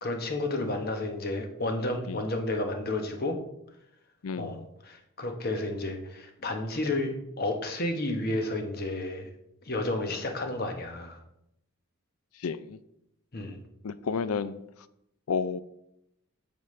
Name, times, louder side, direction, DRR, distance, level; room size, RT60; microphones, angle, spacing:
voice 1, 0.0-3.4 4.3-7.1 7.4-9.3 9.6-11.2 13.3-13.6, left 2 dB, 45° left, 4 dB, 1.0 m, -31 dB
voice 2, 4.2-4.6 12.4-12.8 13.8-14.6 15.3-15.6, left 5 dB, 80° left, 14 dB, 0.5 m, -31 dB
8.7 x 7.0 x 3.3 m, 0.80 s
head